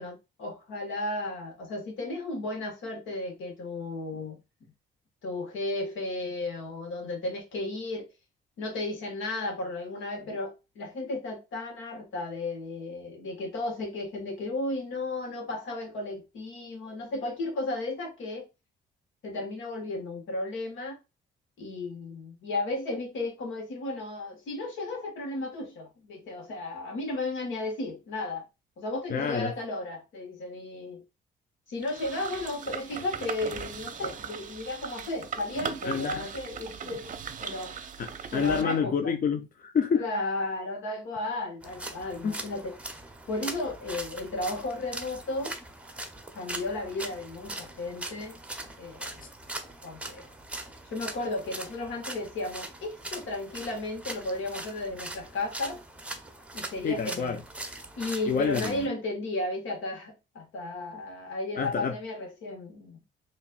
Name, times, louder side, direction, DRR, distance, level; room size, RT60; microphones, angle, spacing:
voice 1, 0.0-4.4 5.2-8.1 8.6-18.5 19.2-21.0 21.6-28.5 28.8-31.0 31.7-37.8 38.3-39.1 40.0-42.8 43.3-45.6 46.3-48.4 48.8-49.2 49.8-50.3 50.9-55.8 56.5-57.4 58.0-63.0, left 2 dB, 80° left, 1.7 m, -34 dB
voice 2, 29.1-29.5 35.8-36.3 38.0-40.1 42.2-42.4 56.8-57.4 58.3-58.9 61.6-62.0, left 6 dB, 45° left, 0.6 m, -28 dB
sound 1, 31.8-38.6, right 7 dB, 40° right, 0.6 m, -39 dB
sound 2, 41.6-58.9, right 2 dB, 5° right, 0.8 m, -41 dB
4.3 x 3.1 x 2.4 m
cardioid pair, 90°, 20 cm